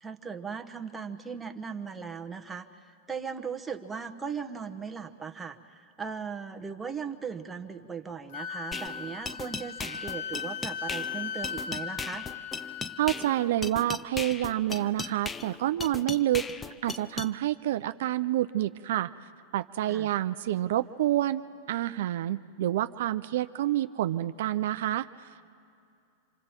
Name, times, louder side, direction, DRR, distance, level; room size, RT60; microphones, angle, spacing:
voice 1, 0.0-12.3 19.9-20.1, right 6 dB, 10° right, 5 dB, 1.0 m, -38 dB
Wind instrument woodwind instrument, 8.3-13.5, left 7 dB, 65° left, 0.7 m, -38 dB
sound 1, 8.7-17.3, left 4 dB, 15° left, 0.5 m, -38 dB
voice 2, 13.0-16.5 16.8-19.1 19.5-25.4, right 13 dB, 70° right, 11 dB, 0.4 m, -28 dB
27.5 x 24.5 x 4.4 m, 2.5 s
hypercardioid pair, 120°, 0 cm